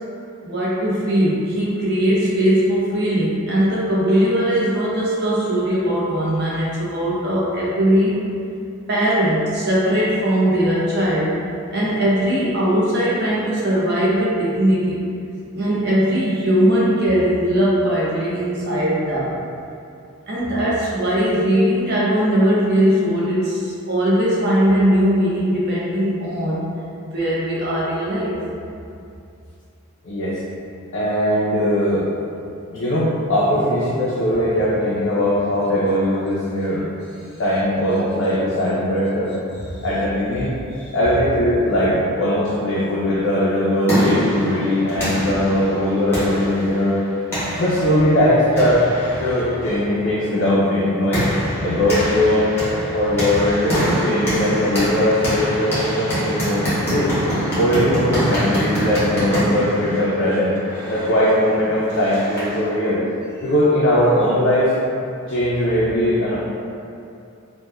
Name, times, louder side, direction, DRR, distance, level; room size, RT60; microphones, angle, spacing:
voice 1, 0.4-8.2 8.9-11.4 11.7-15.0 15.5-19.4 20.3-26.7 27.0-28.4 40.7-40.9, equal, 50° right, -7 dB, 0.6 m, -19 dB
voice 2, 30.0-30.4 30.9-32.1 32.7-36.9 37.4-39.3 39.8-40.5 40.9-47.0 47.6-48.8 49.2-51.3 51.6-52.5 52.9-57.1 57.6-60.6 60.9-63.0 63.4-64.7 65.3-66.3, left 1 dB, 55° left, -9 dB, 0.4 m, -19 dB
sound 1, 43.4-62.7, equal, 10° left, 0.6 m, -26 dB
2.9 x 2.1 x 2.2 m, 2.5 s
head